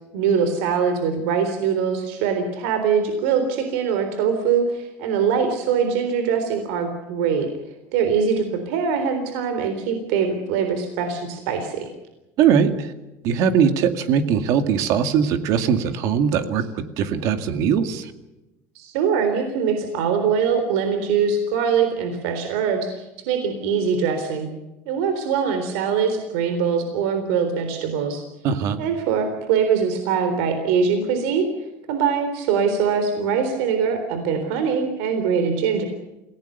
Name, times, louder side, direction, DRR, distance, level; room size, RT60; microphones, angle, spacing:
voice 1, 0.1-7.5 7.9-11.9 18.8-24.5 24.9-28.2 28.8-31.5 31.9-35.8, right 6 dB, 85° right, 7 dB, 3.8 m, -22 dB
voice 2, 12.4-12.9 13.2-16.6 17.0-18.1 28.4-28.8, right 7 dB, 55° right, 9 dB, 2.2 m, -20 dB
27.5 x 18.0 x 6.8 m, 0.97 s
cardioid pair, 165°, 7 cm